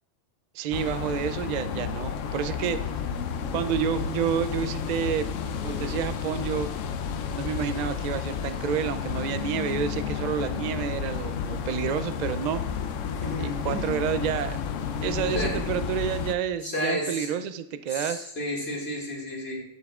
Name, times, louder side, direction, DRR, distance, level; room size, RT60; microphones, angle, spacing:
voice 1, 0.5-2.9 3.5-5.3 5.6-6.7 7.2-12.6 13.4-14.6 15.0-18.3, right 8 dB, 70° right, 11 dB, 0.4 m, -29 dB
sound 1, 0.7-16.3, left 7 dB, 90° left, 1.0 m, -31 dB
voice 2, 13.2-13.9 15.3-15.6 16.6-17.3 17.9-19.6, left 1 dB, 55° left, -3 dB, 2.3 m, -32 dB
11.0 x 6.9 x 2.4 m, 0.76 s
omnidirectional pair, 1.3 m